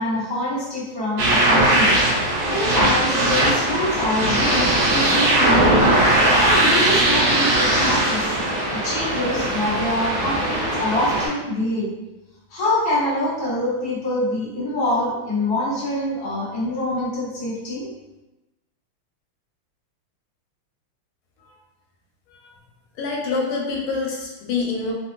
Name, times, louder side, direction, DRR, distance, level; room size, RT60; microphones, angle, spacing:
voice 1, 0.0-1.9 2.4-5.8 6.4-8.3 8.7-11.9 12.5-17.9, left 1 dB, 45° left, -8 dB, 0.6 m, -25 dB
sound 1, 1.2-11.3, right 1 dB, 70° right, 1.3 m, -19 dB
voice 2, 23.0-24.9, left 4 dB, 90° left, -2 dB, 1.5 m, -26 dB
3.6 x 2.2 x 2.4 m, 1.0 s
omnidirectional pair, 2.3 m